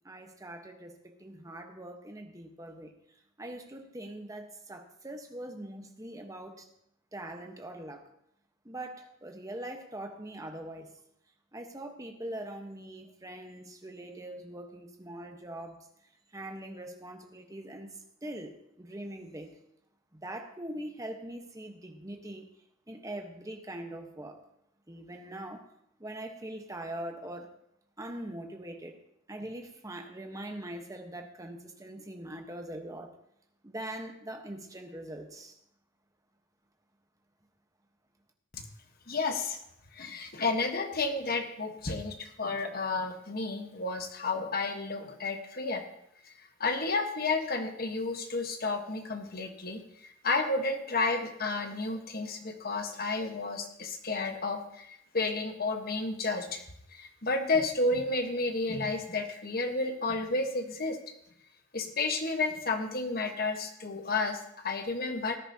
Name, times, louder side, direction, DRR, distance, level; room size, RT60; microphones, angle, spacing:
voice 1, 0.0-2.9 3.4-6.7 7.1-8.0 8.6-10.9 11.5-15.8 16.3-17.9 18.2-19.5 20.1-22.5 22.9-24.4 24.9-25.6 26.0-27.5 28.0-29.0 29.3-33.1 33.6-35.5, right 1 dB, 15° right, 4 dB, 1.1 m, -42 dB
voice 2, 39.1-39.6 39.9-45.8 46.2-46.3 46.6-56.6 56.9-61.0 61.7-65.4, left 3 dB, 50° left, 5 dB, 1.3 m, -31 dB
18.5 x 10.0 x 2.8 m, 0.76 s
head